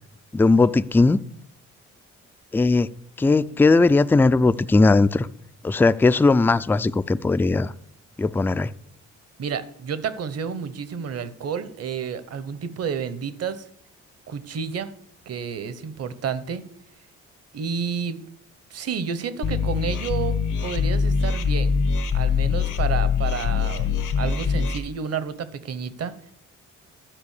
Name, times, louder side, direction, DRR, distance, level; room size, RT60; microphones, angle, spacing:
voice 1, 0.3-1.2 2.5-2.9 3.2-5.3 5.6-7.7 8.2-8.7, left 3 dB, 5° left, 0.3 m, -18 dB
voice 2, 9.4-13.7 14.3-14.9 15.3-16.6 17.5-18.2 18.7-21.8 22.1-23.9 24.2-26.1, right 6 dB, 55° right, 1.0 m, -30 dB
sound 1, 19.4-24.8, left 6 dB, 80° left, 1.3 m, -23 dB
12.5 x 5.1 x 6.6 m
cardioid pair, 90°, 30 cm